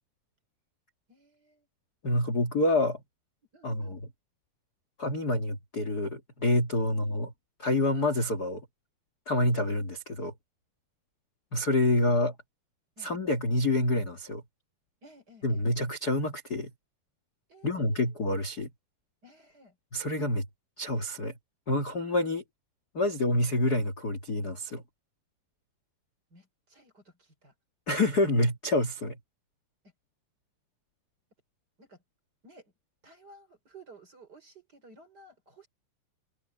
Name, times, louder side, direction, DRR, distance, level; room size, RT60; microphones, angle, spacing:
voice 1, 1.1-1.7 3.5-4.0 6.8-7.0 13.0-13.1 15.0-15.7 17.5-18.1 19.2-19.8 26.3-27.5 31.8-32.0 32.4-32.7 33.0-35.7, right 2 dB, 25° right, 4.5 m, -55 dB
voice 2, 2.0-3.0 3.6-4.0 5.0-7.3 7.6-8.6 9.2-10.3 11.5-12.3 13.0-14.4 15.4-16.7 17.6-18.7 19.9-20.5 20.8-21.3 21.7-22.4 22.9-24.8 27.9-29.2, left 1 dB, 35° left, 1.7 m, -27 dB
omnidirectional pair, 4.6 m